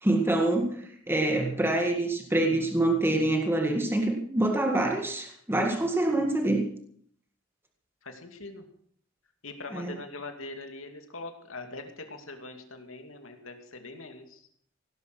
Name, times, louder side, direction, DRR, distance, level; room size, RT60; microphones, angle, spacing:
voice 1, 0.0-6.7 9.7-9.9, right 1 dB, 10° right, 2 dB, 1.8 m, -26 dB
voice 2, 8.0-8.7 9.4-14.5, left 2 dB, 85° left, 5 dB, 2.6 m, -42 dB
17.5 x 12.0 x 6.2 m, 0.63 s
head